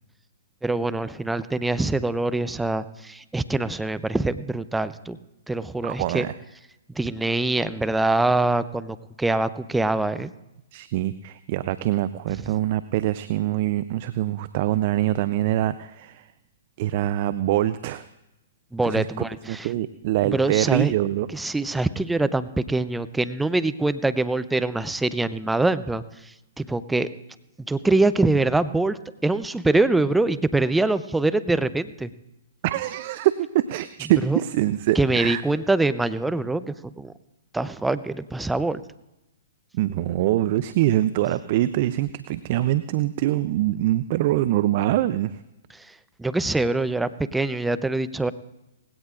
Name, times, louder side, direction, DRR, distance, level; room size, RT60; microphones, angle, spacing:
voice 1, 0.6-5.2 5.5-6.2 7.0-10.3 18.7-19.7 20.2-20.9 21.3-26.0 26.6-27.1 27.7-32.1 34.2-34.4 35.0-37.1 37.5-38.8 45.8-45.9 46.2-48.3, right 2 dB, 5° right, 13 dB, 0.6 m, -24 dB
voice 2, 5.8-6.3 10.7-16.3 16.8-18.0 18.8-19.1 19.5-21.3 32.6-35.4 39.7-45.4, right 14 dB, 45° right, 14 dB, 0.5 m, -24 dB
19.5 x 16.5 x 2.5 m, 0.94 s
figure-of-eight pair, 120°, 0 cm